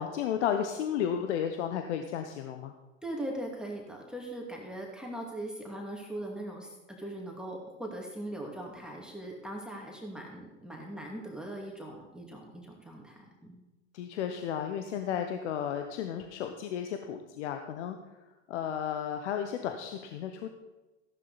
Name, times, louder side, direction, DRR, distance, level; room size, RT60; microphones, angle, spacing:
voice 1, 0.0-2.7 13.9-18.0 18.5-20.5, left 8 dB, 65° left, 6 dB, 1.1 m, -33 dB
voice 2, 3.0-13.6, right 1 dB, ahead, -1 dB, 2.5 m, -40 dB
14.5 x 11.5 x 4.2 m, 1.1 s
hypercardioid pair, 90°, 38 cm